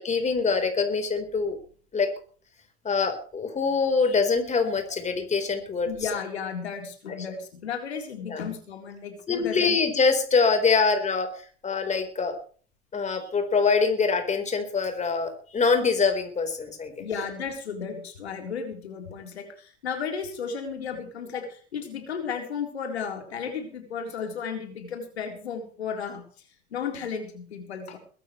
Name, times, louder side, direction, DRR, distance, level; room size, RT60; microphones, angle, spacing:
voice 1, 0.0-1.6 1.9-2.1 2.8-5.9 8.3-8.4 9.3-11.3 11.6-12.4 12.9-16.9, left 4 dB, 20° left, 6 dB, 4.4 m, -24 dB
voice 2, 5.9-9.8 17.0-26.2 26.7-28.0, left 6 dB, 85° left, 4 dB, 4.1 m, -34 dB
22.0 x 13.0 x 3.3 m, 0.42 s
hypercardioid pair, 95°, 32 cm